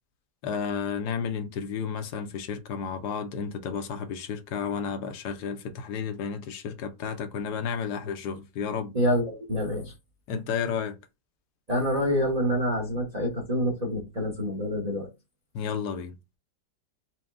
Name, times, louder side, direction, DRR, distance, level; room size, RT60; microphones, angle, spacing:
voice 1, 0.4-8.9 10.3-11.0 15.5-16.1, left 6 dB, 75° left, 1.1 m, -32 dB
voice 2, 8.9-9.9 11.7-15.1, equal, 30° right, 0.7 m, -27 dB
4.4 x 2.1 x 3.5 m
omnidirectional pair, 1.9 m